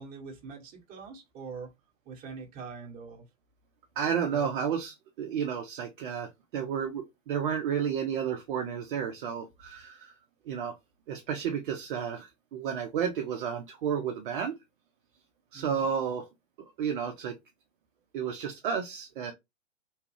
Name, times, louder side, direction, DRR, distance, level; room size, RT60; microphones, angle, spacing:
voice 1, 0.0-1.7 2.0-3.3 4.3-4.6 15.5-15.9, right 5 dB, 20° right, 1.0 m, -43 dB
voice 2, 4.0-10.1 10.5-10.7 11.1-14.5 15.5-16.2 16.8-17.3 18.1-19.3, right 7 dB, 40° right, 0.6 m, -32 dB
3.1 x 2.3 x 3.0 m
figure-of-eight pair, 110°, 39 cm